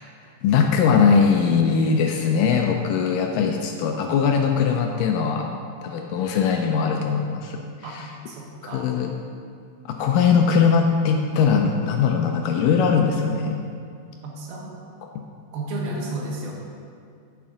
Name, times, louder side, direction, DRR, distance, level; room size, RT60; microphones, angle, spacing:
voice 1, 0.2-5.5 5.8-8.1 8.7-9.1 9.9-13.6, left 6 dB, 80° left, 3 dB, 2.0 m, -21 dB
voice 2, 8.3-8.9 14.2-14.8 15.5-16.5, right 2 dB, 90° right, -2 dB, 3.2 m, -32 dB
10.5 x 7.1 x 3.7 m, 2.3 s
omnidirectional pair, 4.2 m